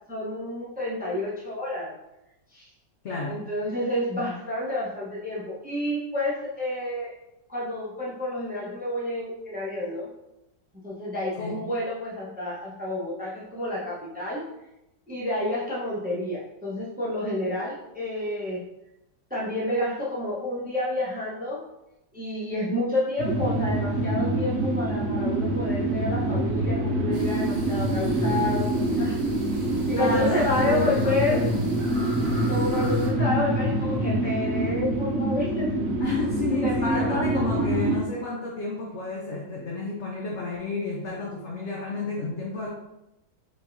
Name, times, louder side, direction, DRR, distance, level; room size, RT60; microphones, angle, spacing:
voice 1, 0.1-1.9 2.5-2.7 3.3-7.1 7.5-10.1 10.8-14.4 15.1-18.6 19.3-21.6 22.1-29.2 29.9-31.5 32.5-35.7 36.6-37.3 37.5-37.6, left 1 dB, 5° right, -7 dB, 0.7 m, -29 dB
voice 2, 3.0-3.4 11.4-11.6 29.9-31.7 36.0-42.7, left 3 dB, 65° left, -2 dB, 0.7 m, -31 dB
sound 1, 23.2-38.0, right 1 dB, 80° right, 0.6 m, -25 dB
sound 2, 27.1-33.1, right 1 dB, 60° right, 1.4 m, -42 dB
4.9 x 3.7 x 2.7 m, 0.90 s
omnidirectional pair, 2.0 m